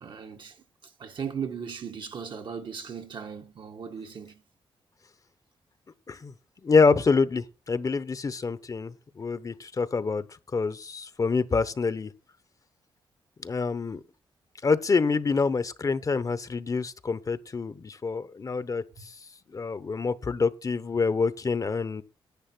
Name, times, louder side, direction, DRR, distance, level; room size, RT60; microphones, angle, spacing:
voice 1, 0.0-0.6 1.0-4.4 19.0-19.1, right 6 dB, 60° right, 1.5 m, -37 dB
voice 2, 6.6-10.2 10.5-12.1 13.4-14.0 14.6-18.8 19.5-22.0, left 4 dB, 40° left, 0.9 m, -26 dB
10.5 x 8.9 x 6.1 m
cardioid pair, 75°, 9 cm